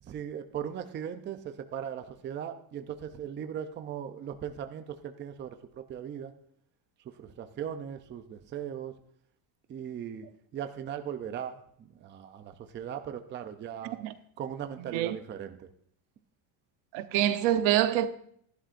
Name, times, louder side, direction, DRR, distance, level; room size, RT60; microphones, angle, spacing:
voice 1, 0.0-6.3 7.0-9.0 9.7-10.3 10.5-14.0 14.4-15.7, right 9 dB, 25° right, 0.5 m, -38 dB
voice 2, 16.9-18.1, right 12 dB, 75° right, 0.9 m, -25 dB
14.5 x 11.5 x 2.5 m
cardioid pair, 155°, 49 cm